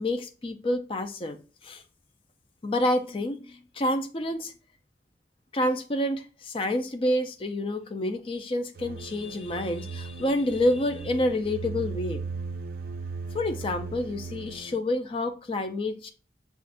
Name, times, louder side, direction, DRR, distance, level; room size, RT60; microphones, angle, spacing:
voice 1, 0.0-1.4 1.6-1.8 2.6-4.5 5.5-12.2 13.3-16.1, left 1 dB, 30° left, 0.4 m, -28 dB
sound 1, 8.8-14.7, right 4 dB, 55° right, 0.4 m, -37 dB
6.3 x 2.4 x 2.5 m
head